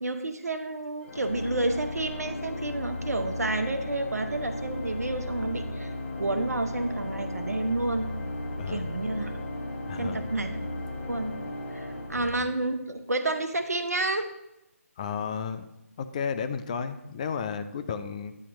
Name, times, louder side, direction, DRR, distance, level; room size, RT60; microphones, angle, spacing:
voice 1, 0.0-5.9 6.2-8.1 8.7-9.4 10.0-10.5 11.1-11.3 11.7-14.3, right 2 dB, 80° right, 7 dB, 0.6 m, -30 dB
Organ, 1.0-12.9, left 1 dB, 50° left, 1.2 m, -35 dB
voice 2, 9.9-10.2 12.1-12.4 15.0-15.7 16.0-18.3, left 6 dB, 30° left, 10 dB, 0.3 m, -33 dB
8.4 x 2.9 x 6.1 m, 0.90 s
figure-of-eight pair, 150°, 8 cm